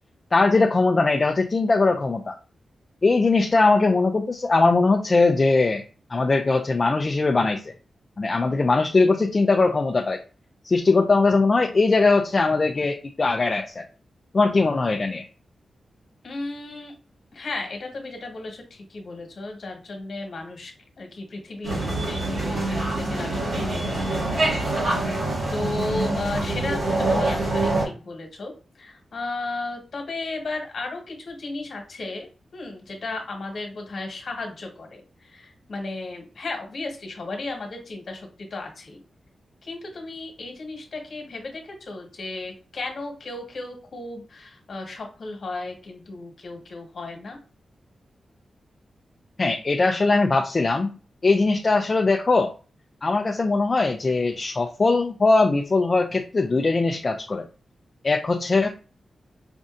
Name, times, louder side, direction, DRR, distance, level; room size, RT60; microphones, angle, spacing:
voice 1, 0.3-2.4 3.0-5.8 6.1-7.7 8.2-10.2 10.6-13.9 14.3-15.3 49.4-50.9 51.2-52.5 53.0-57.5 58.0-58.7, left 3 dB, 30° left, 3 dB, 0.3 m, -20 dB
voice 2, 16.2-16.9 17.3-20.7 21.0-25.2 25.5-28.5 28.8-39.0 39.6-47.4, left 2 dB, 55° left, 3 dB, 1.2 m, -35 dB
sound 1, 21.6-27.8, right 2 dB, 55° right, 1.5 m, -25 dB
5.1 x 2.6 x 2.4 m, 0.36 s
wide cardioid pair, 125°, 0 cm